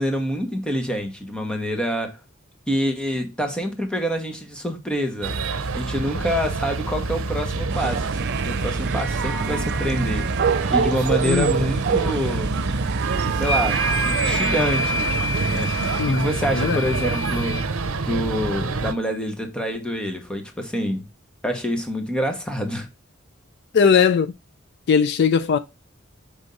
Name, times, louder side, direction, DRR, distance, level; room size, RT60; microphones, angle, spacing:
voice 1, 0.0-2.2 2.7-5.4 5.7-10.3 10.7-12.5 13.4-15.2 15.5-21.1 21.4-22.9, equal, 5° left, 1.2 m, -26 dB
sound 1, 5.2-18.9, right 3 dB, 90° right, 0.7 m, -26 dB
sound 2, 7.7-16.0, right 6 dB, 55° right, 0.5 m, -28 dB
sound 3, 13.4-17.6, left 2 dB, 90° left, 1.2 m, -28 dB
voice 2, 16.0-16.8 23.7-24.3 24.9-25.6, left 6 dB, 55° left, 0.4 m, -19 dB
5.3 x 3.6 x 5.3 m
head